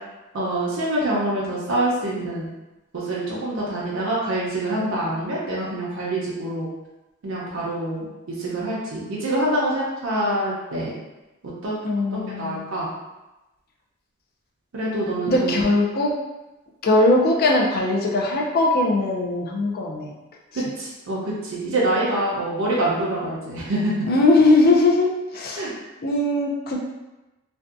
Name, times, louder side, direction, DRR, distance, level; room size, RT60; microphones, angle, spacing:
voice 1, 0.3-2.5 2.9-6.7 7.2-10.9 11.6-11.7 12.1-12.9 14.7-15.6 20.5-23.9 25.6-25.7, right 1 dB, 70° right, -6 dB, 0.5 m, -25 dB
voice 2, 11.8-12.7 15.3-16.1 16.8-20.1 20.5-20.6 24.0-25.7 26.0-26.8, left 2 dB, 45° left, 0 dB, 0.4 m, -20 dB
2.6 x 2.2 x 2.4 m, 1.0 s
head